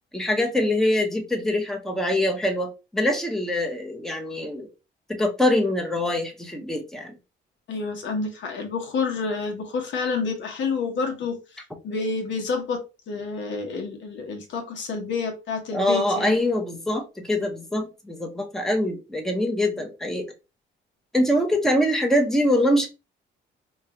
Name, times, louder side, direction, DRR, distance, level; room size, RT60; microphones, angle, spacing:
voice 1, 0.1-4.7 5.1-7.1 15.7-20.3 21.1-22.9, left 1 dB, ahead, 0.8 m, -24 dB
voice 2, 7.7-11.4 11.8-16.3, left 4 dB, 70° left, 0.9 m, -29 dB
3.1 x 2.4 x 2.9 m
cardioid pair, 90°, 20 cm